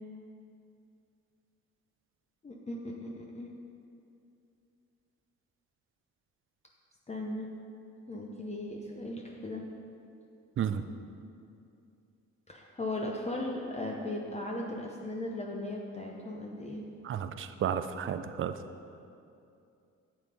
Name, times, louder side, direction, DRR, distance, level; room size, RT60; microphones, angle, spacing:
voice 1, 2.4-3.5 7.1-7.5 8.1-9.6 12.5-16.8, left 1 dB, 20° left, -1 dB, 0.7 m, -37 dB
voice 2, 17.0-18.5, right 8 dB, 45° right, 10 dB, 0.5 m, -32 dB
8.8 x 7.5 x 3.4 m, 2.5 s
cardioid pair, 90°, 30 cm